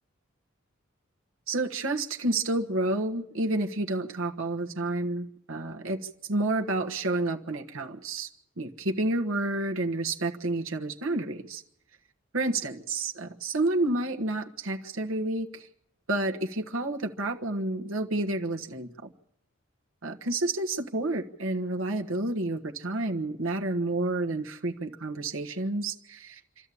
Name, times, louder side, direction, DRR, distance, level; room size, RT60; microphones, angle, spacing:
voice 1, 1.5-6.0 6.3-8.3 8.6-11.6 12.3-15.7 16.1-18.9 20.0-26.4, right 2 dB, 70° right, 4 dB, 1.4 m, -30 dB
26.5 x 13.0 x 8.5 m, 0.81 s
head